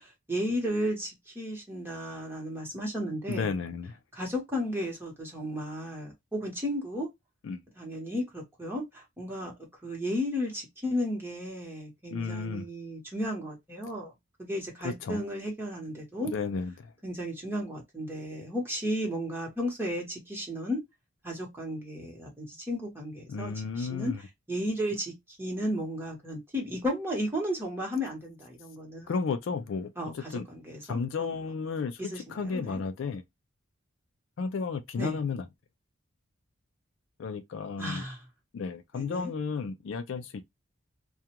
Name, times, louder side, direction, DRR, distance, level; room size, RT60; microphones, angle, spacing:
voice 1, 0.0-3.5 4.1-7.1 7.8-9.5 9.8-14.1 14.4-16.3 17.0-20.8 21.2-24.1 24.5-29.2 30.0-30.1 30.5-31.3 32.0-32.8 35.0-35.2 37.8-38.2 38.9-39.3, equal, 10° right, 1.0 m, -34 dB
voice 2, 3.3-4.0 7.4-7.6 12.1-12.7 14.8-15.2 16.2-16.9 23.3-24.2 29.1-30.5 30.8-33.2 34.4-35.5 37.2-38.0 38.5-40.4, left 5 dB, 65° left, 0.3 m, -33 dB
2.4 x 2.2 x 2.8 m
head